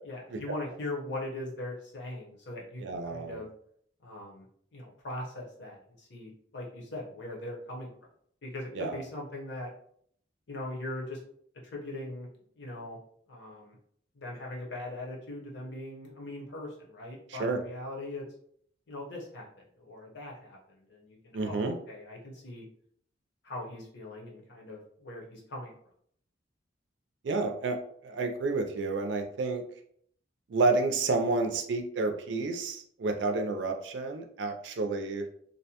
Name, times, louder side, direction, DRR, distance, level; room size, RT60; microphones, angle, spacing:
voice 1, 0.0-3.5 4.0-4.4 4.7-7.9 8.4-9.7 10.5-11.2 11.6-12.3 12.6-13.0 13.3-13.7 14.1-18.2 18.9-22.6 23.4-25.7, left 1 dB, 65° left, -2 dB, 0.8 m, -40 dB
voice 2, 2.8-3.4 8.8-9.0 17.4-17.6 21.3-21.7 27.2-27.8 28.0-29.6 30.5-35.3, right 3 dB, 70° right, 5 dB, 0.4 m, -30 dB
2.6 x 2.1 x 2.8 m, 0.64 s
head